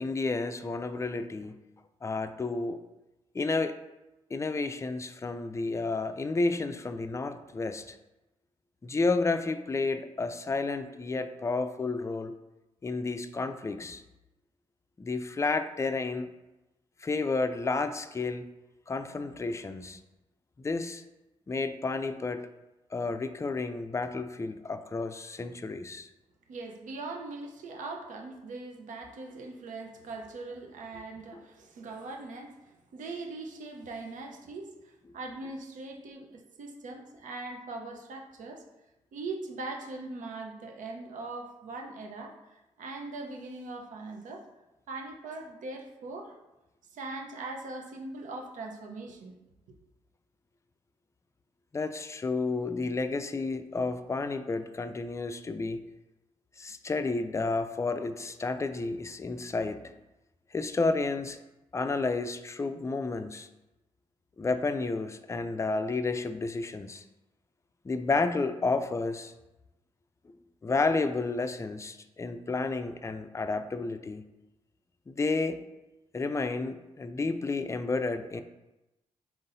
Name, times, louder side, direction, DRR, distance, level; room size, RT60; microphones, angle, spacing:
voice 1, 0.0-1.6 2.0-2.8 3.3-3.8 4.3-8.0 8.8-12.3 12.8-14.0 15.0-16.3 17.0-18.5 18.9-20.0 20.6-21.0 21.5-22.5 22.9-26.1 51.7-55.8 56.6-59.9 60.5-61.4 61.7-63.5 64.4-67.0 67.8-69.3 70.6-74.2 75.1-75.6 76.1-78.4, left 3 dB, 20° left, 9 dB, 0.4 m, -31 dB
voice 2, 26.5-38.6 39.1-44.4 44.9-46.3 46.9-49.3, right 3 dB, 70° right, 2 dB, 0.8 m, -41 dB
4.5 x 3.8 x 2.6 m, 0.99 s
supercardioid pair, 45°, 14 cm